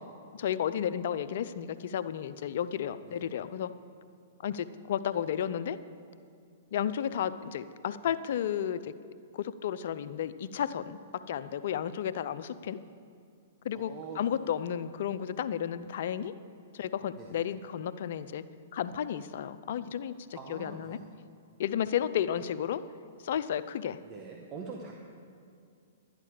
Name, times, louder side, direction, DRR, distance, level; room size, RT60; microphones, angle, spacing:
voice 1, 0.4-3.7 4.4-5.8 6.7-8.9 9.3-11.0 11.3-12.8 13.6-16.3 16.7-18.4 18.7-21.0 21.6-22.8 23.2-24.0, left 9 dB, 60° left, 13 dB, 0.5 m, -32 dB
voice 2, 3.1-3.4 13.7-14.4 17.2-17.5 20.3-21.1 24.1-25.0, right 5 dB, 30° right, 1 dB, 1.2 m, -44 dB
12.0 x 10.5 x 5.0 m, 2.4 s
hypercardioid pair, 125°, 0 cm